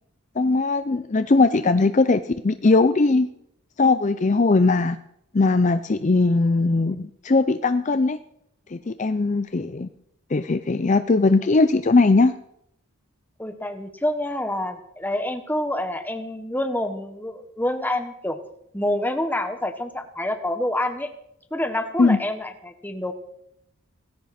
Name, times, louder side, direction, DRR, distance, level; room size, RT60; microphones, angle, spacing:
voice 1, 0.4-3.3 3.8-5.0 5.3-8.2 8.7-9.9 10.3-12.4 22.0-22.2, left 3 dB, 35° left, 11 dB, 0.5 m, -19 dB
voice 2, 13.4-18.4 18.7-21.1 21.5-23.1, left 1 dB, 10° left, 8 dB, 1.3 m, -27 dB
18.5 x 16.5 x 4.3 m, 0.77 s
head